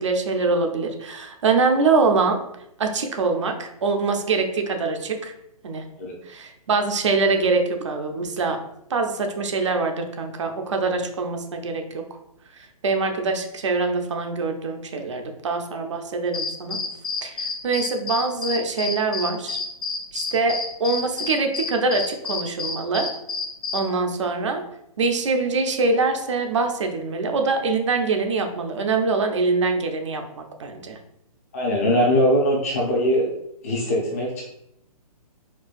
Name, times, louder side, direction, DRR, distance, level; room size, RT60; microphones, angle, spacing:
voice 1, 0.0-2.4 2.8-5.3 5.6-5.9 6.3-8.6 8.9-12.1 12.5-16.8 17.2-19.6 20.1-23.1 23.7-24.6 25.0-31.0, right 4 dB, 50° right, 4 dB, 0.5 m, -24 dB
sound 1, 16.3-23.9, left 4 dB, 70° left, 0.7 m, -29 dB
voice 2, 31.5-33.3 33.6-34.4, equal, 25° left, -2 dB, 0.6 m, -21 dB
4.4 x 2.2 x 2.4 m, 0.76 s
hypercardioid pair, 170°, 20 cm